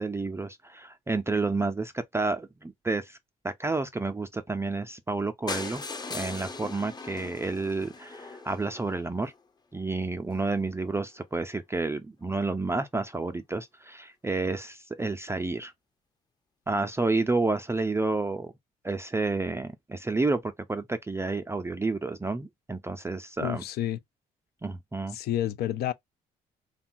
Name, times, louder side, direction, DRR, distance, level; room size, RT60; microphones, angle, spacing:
voice 1, 0.0-3.2 3.4-5.8 6.1-9.3 9.7-15.7 16.7-18.5 18.8-23.6 24.6-25.2, right 3 dB, 15° right, 0.5 m, -30 dB
sound 1, 5.5-9.4 10.0-10.1 10.3-10.5 10.7-10.8 11.0-11.1, left 3 dB, 20° left, 0.6 m, -39 dB
voice 2, 23.4-24.0 25.1-25.9, left 12 dB, 60° left, 0.4 m, -29 dB
2.8 x 2.2 x 2.5 m
hypercardioid pair, 55°, 18 cm